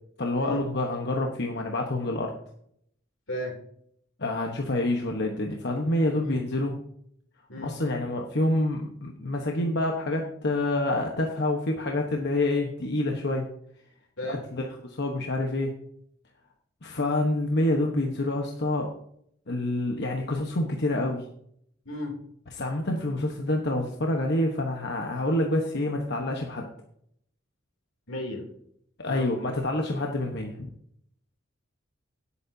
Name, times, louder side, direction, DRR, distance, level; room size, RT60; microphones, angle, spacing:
voice 1, 0.2-2.3 4.2-6.8 7.6-13.5 14.3-15.7 16.8-18.9 19.5-21.2 22.5-26.7 29.0-30.7, left 1 dB, 60° left, 1 dB, 1.2 m, -27 dB
voice 2, 3.3-3.6 6.2-6.4 7.5-7.7 14.2-14.4 21.8-22.1 28.1-28.4 29.1-29.4, left 1 dB, 80° left, 1 dB, 3.0 m, -34 dB
17.5 x 8.5 x 2.8 m, 0.69 s
head